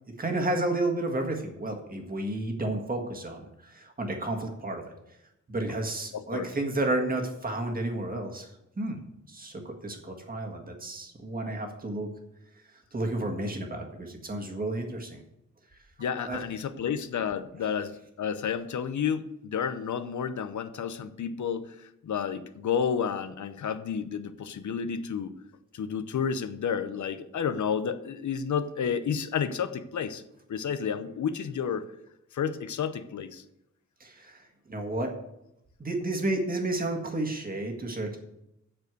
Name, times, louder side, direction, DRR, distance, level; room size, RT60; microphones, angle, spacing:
voice 1, 0.2-4.8 5.5-8.5 8.8-9.0 9.3-12.1 12.9-15.2 16.2-16.4 34.0-35.1 35.8-38.2, right 2 dB, 30° right, 2 dB, 1.7 m, -31 dB
voice 2, 6.1-6.5 11.5-11.6 16.0-25.3 25.7-30.2 30.5-31.8 32.3-33.4, left 7 dB, 75° left, 11 dB, 0.7 m, -31 dB
7.9 x 6.8 x 7.9 m, 0.84 s
wide cardioid pair, 165°, 30 cm